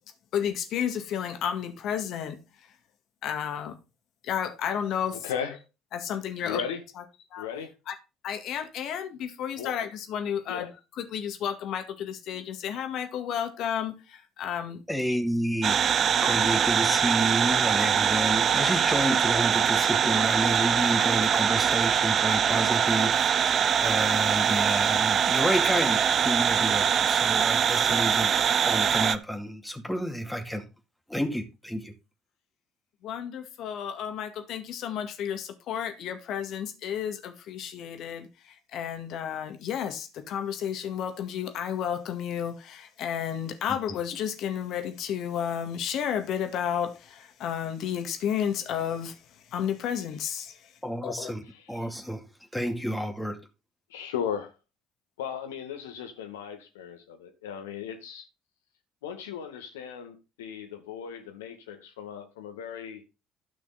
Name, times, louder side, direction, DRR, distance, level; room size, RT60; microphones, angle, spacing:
voice 1, 0.3-2.4 3.2-3.8 4.2-5.2 5.9-6.6 7.3-7.5 7.9-8.0 8.2-10.7 11.0-14.8 16.2-16.6 33.0-49.2 49.5-50.6 51.0-51.3, left 9 dB, 60° left, 2.0 m, -32 dB
voice 2, 5.1-5.6 6.4-6.8 7.4-7.7 9.6-9.8 10.5-10.7 51.4-51.9 53.9-54.5 55.2-58.3 59.0-63.0, left 8 dB, 80° left, 2.0 m, -36 dB
voice 3, 14.9-30.7 31.1-31.9 43.7-43.8 50.8-53.4, equal, 5° left, 2.3 m, -30 dB
sound 1, 15.6-29.2, right 8 dB, 50° right, 0.7 m, -23 dB
12.0 x 6.1 x 4.3 m
hypercardioid pair, 55°, 0 cm